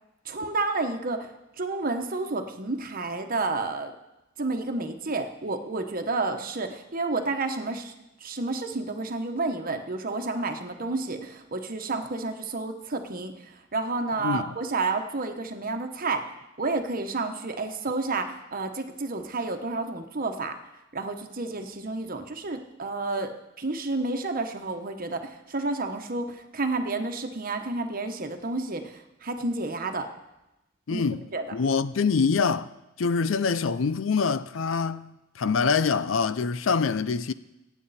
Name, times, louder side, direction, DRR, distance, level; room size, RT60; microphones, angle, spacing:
voice 1, 0.2-1.3 1.6-3.9 4.4-7.9 8.2-13.3 13.7-16.2 16.6-20.5 20.9-23.3 23.6-30.1 30.9-31.0 31.3-31.4, right 3 dB, 45° right, 1.2 m, -30 dB
voice 2, 30.9-31.3 31.5-32.7 33.0-37.3, left 5 dB, 70° left, 0.5 m, -25 dB
23.5 x 9.1 x 4.2 m
head